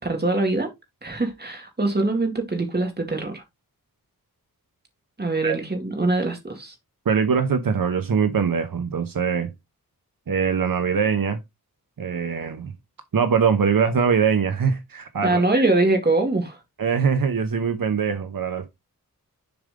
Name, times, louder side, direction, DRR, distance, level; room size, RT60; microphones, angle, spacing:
voice 1, 0.0-0.7 1.0-3.4 5.2-6.7 15.2-16.6, right 2 dB, 25° right, 2.2 m, -23 dB
voice 2, 7.1-9.5 10.3-11.4 12.0-12.7 13.1-15.6 16.8-18.7, right 6 dB, 65° right, 0.9 m, -22 dB
7.1 x 4.9 x 3.7 m
wide cardioid pair, 105°, 36 cm